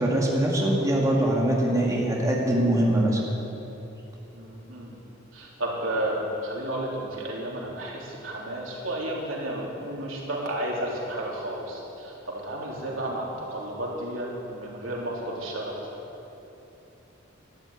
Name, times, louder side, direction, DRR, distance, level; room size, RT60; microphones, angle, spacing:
voice 1, 0.0-3.2, right 1 dB, 15° right, -3 dB, 2.2 m, -23 dB
voice 2, 4.3-5.0 5.3-15.8, right 1 dB, 85° right, -3 dB, 3.5 m, -32 dB
12.5 x 12.0 x 8.8 m, 3.0 s
head